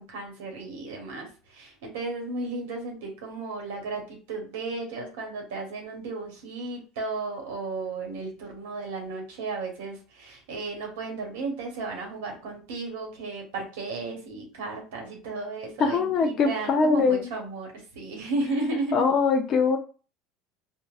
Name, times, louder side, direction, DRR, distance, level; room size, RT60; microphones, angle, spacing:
voice 1, 0.0-19.1, right 3 dB, 90° right, 1 dB, 1.1 m, -34 dB
voice 2, 15.8-17.3 18.9-19.8, left 4 dB, 50° left, 5 dB, 0.7 m, -22 dB
3.8 x 2.0 x 2.4 m, 0.35 s
supercardioid pair, 105°, 0 cm